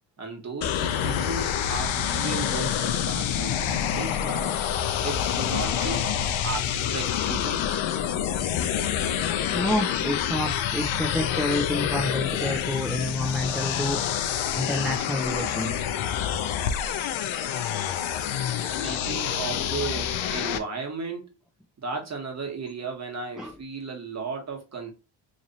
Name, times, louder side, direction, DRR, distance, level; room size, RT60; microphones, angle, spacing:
voice 1, 0.2-4.6 5.0-7.8 18.6-21.3 21.8-24.9, right 4 dB, 35° right, 1.4 m, -35 dB
sound 1, 0.6-20.6, left 9 dB, 85° left, 0.7 m, -27 dB
voice 2, 9.2-14.0 14.5-15.7 23.4-23.5, left 1 dB, ahead, 0.6 m, -29 dB
3.2 x 2.6 x 4.0 m
cardioid pair, 105°, 46 cm